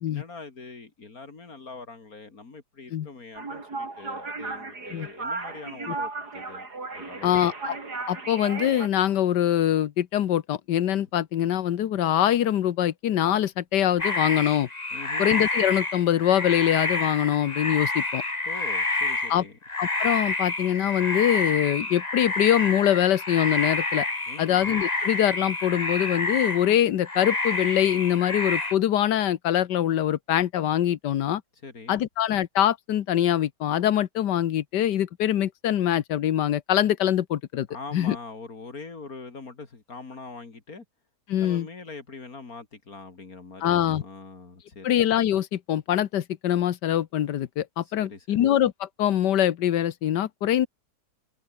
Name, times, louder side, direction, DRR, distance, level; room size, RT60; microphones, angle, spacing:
voice 1, 0.1-7.4 14.9-15.3 18.4-19.6 24.3-24.6 31.6-32.0 37.7-40.8 41.4-44.9 47.8-48.4, left 4 dB, 55° left, 3.1 m, -43 dB
sound 1, 3.4-8.9, right 3 dB, 65° right, 4.7 m, -35 dB
voice 2, 7.2-7.7 8.1-14.7 15.2-18.2 19.3-19.4 19.8-24.1 24.4-31.4 31.9-37.7 37.9-38.2 41.3-41.7 43.6-44.0 44.8-50.7, left 11 dB, 80° left, 1.6 m, -24 dB
sound 2, 14.0-26.8 27.0-28.7, left 2 dB, 25° left, 2.2 m, -28 dB
omnidirectional pair, 1.8 m